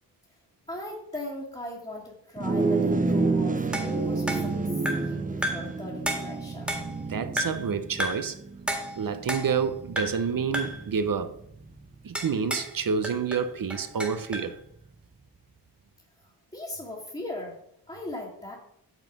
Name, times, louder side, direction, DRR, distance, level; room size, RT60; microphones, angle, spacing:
voice 1, 0.7-4.5 4.9-6.7 16.5-17.6 17.9-18.6, left 1 dB, 15° left, 1.7 m, -38 dB
sound 1, 2.4-11.9, right 3 dB, 20° right, 0.5 m, -30 dB
sound 2, 3.7-5.2 5.4-5.8 6.1-7.0 7.4-7.7 8.0-8.3 8.7-9.7 10.0-10.3 10.5-10.9 12.2-12.8 13.0-14.5, equal, 5° right, 1.8 m, -32 dB
voice 2, 7.1-8.4 9.0-11.3 12.0-14.6, right 6 dB, 55° right, 0.7 m, -28 dB
7.0 x 6.0 x 5.2 m
wide cardioid pair, 95°, 41 cm